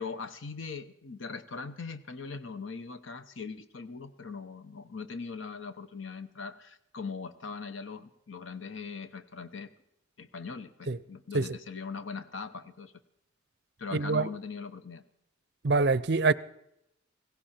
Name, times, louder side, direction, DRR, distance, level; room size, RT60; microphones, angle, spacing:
voice 1, 0.0-9.7 10.2-12.9 13.8-15.0, left 4 dB, 85° left, 0.9 m, -40 dB
voice 2, 13.9-14.3 15.6-16.3, right 3 dB, 55° right, 0.5 m, -25 dB
17.0 x 16.5 x 4.4 m
head